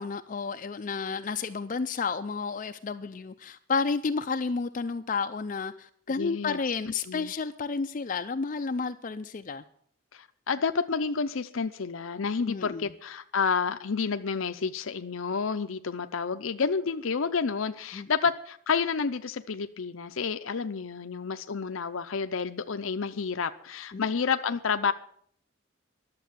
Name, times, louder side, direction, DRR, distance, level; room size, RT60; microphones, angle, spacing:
voice 1, 0.0-9.6 12.5-12.9 17.9-18.1 23.9-24.0, left 4 dB, 40° left, 8 dB, 0.4 m, -31 dB
voice 2, 6.1-6.6 6.9-7.3 10.1-24.9, left 5 dB, 80° left, 9 dB, 0.6 m, -30 dB
11.5 x 7.5 x 9.0 m, 0.62 s
head